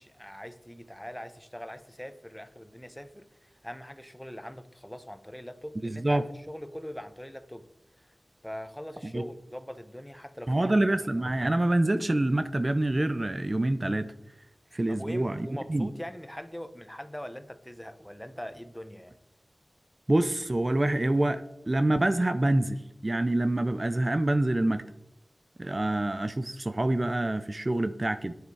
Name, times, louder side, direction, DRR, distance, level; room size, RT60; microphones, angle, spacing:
voice 1, 0.0-7.6 8.0-8.1 8.4-10.7 11.2-11.3 14.9-19.2, equal, 10° left, 11 dB, 1.0 m, -42 dB
voice 2, 5.8-6.2 9.0-9.2 10.5-14.1 14.7-15.9 20.1-21.4 21.7-24.8 25.6-28.3, right 1 dB, 35° right, 10 dB, 0.7 m, -26 dB
10.5 x 9.5 x 4.8 m, 0.83 s
wide cardioid pair, 60°, 0 cm